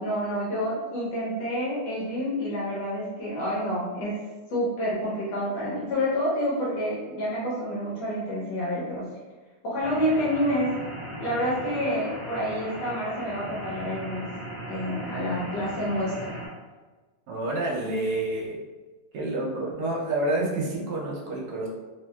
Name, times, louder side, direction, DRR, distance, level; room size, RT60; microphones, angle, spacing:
voice 1, 0.0-9.1 9.6-10.8 11.2-14.3 14.7-16.4, equal, 85° left, -7 dB, 1.5 m, -28 dB
sound 1, 9.8-16.5, equal, 25° right, 0.9 m, -38 dB
voice 2, 17.3-18.6 19.1-21.7, right 2 dB, 70° right, -3 dB, 1.1 m, -28 dB
3.0 x 2.7 x 2.2 m, 1.3 s
omnidirectional pair, 2.0 m